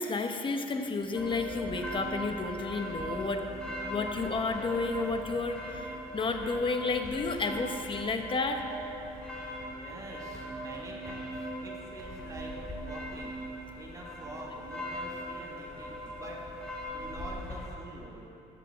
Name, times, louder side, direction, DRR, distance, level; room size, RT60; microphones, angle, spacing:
voice 1, 0.0-3.4 3.8-8.6, left 3 dB, 30° left, 5 dB, 1.0 m, -31 dB
sound 1, 1.1-17.7, equal, 5° left, 3.1 m, -40 dB
voice 2, 9.4-12.5 12.8-13.4 13.8-16.4 16.7-18.3, right 1 dB, 20° right, -3 dB, 1.9 m, -46 dB
12.5 x 6.8 x 7.7 m, 2.8 s
cardioid pair, 110°, 17 cm